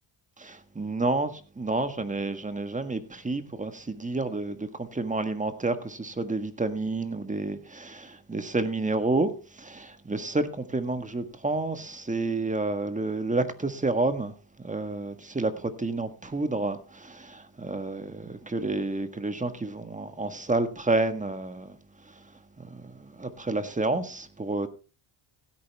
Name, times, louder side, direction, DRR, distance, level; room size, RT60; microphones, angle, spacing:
voice 1, 0.4-9.3 9.6-14.3 14.6-21.7 22.6-24.7, right 2 dB, 15° right, 1.6 m, -30 dB
15.5 x 9.1 x 3.5 m
supercardioid pair, 85°, 50 cm